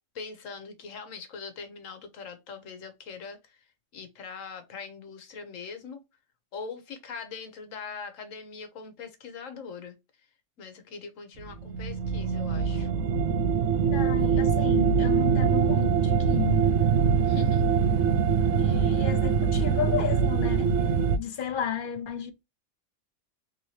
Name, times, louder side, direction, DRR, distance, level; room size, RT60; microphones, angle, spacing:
voice 1, 0.1-3.6 3.9-6.0 6.5-9.9 10.6-12.9 17.2-17.7 18.7-18.8, left 5 dB, 85° left, 1.3 m, -42 dB
sound 1, 11.4-21.2, right 6 dB, 75° right, 0.9 m, -23 dB
voice 2, 13.9-16.6 18.6-20.7 21.2-22.3, left 9 dB, 55° left, 0.6 m, -33 dB
3.5 x 2.8 x 3.0 m
omnidirectional pair, 1.3 m